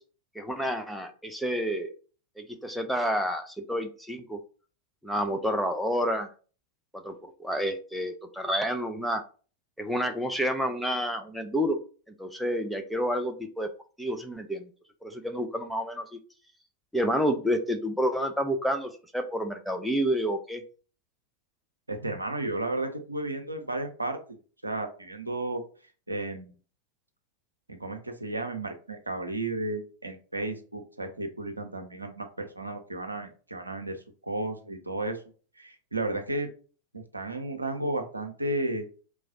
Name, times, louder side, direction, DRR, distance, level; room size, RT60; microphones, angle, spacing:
voice 1, 0.4-1.9 2.4-4.4 5.0-6.3 6.9-9.2 9.8-11.8 12.2-13.7 14.0-14.7 15.0-16.2 16.9-20.6, equal, ahead, 4 dB, 0.5 m, -29 dB
voice 2, 21.9-25.6 26.1-26.5 27.7-35.2 35.6-36.5 36.9-38.9, right 2 dB, 85° right, 5 dB, 0.6 m, -33 dB
3.1 x 2.3 x 3.8 m, 0.39 s
figure-of-eight pair, 90°, 0 cm